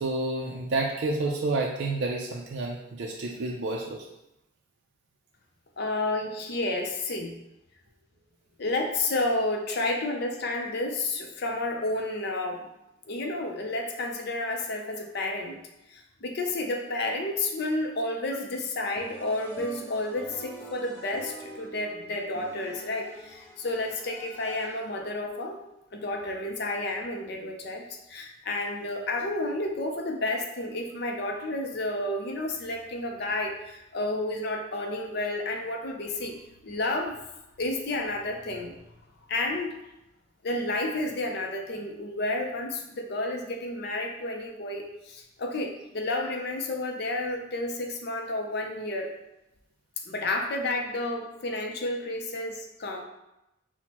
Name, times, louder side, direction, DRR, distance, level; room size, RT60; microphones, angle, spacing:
voice 1, 0.0-4.0, right 2 dB, 55° right, -1 dB, 0.4 m, -29 dB
voice 2, 5.8-7.4 8.6-12.7 13.1-15.6 15.9-25.6 25.9-36.4 36.6-37.2 37.6-38.7 39.3-39.7 40.4-49.1 50.1-53.0, left 2 dB, 55° left, 3 dB, 0.5 m, -31 dB
sound 1, 19.0-25.0, right 1 dB, 10° left, 0.7 m, -45 dB
6.0 x 2.1 x 2.9 m, 0.90 s
head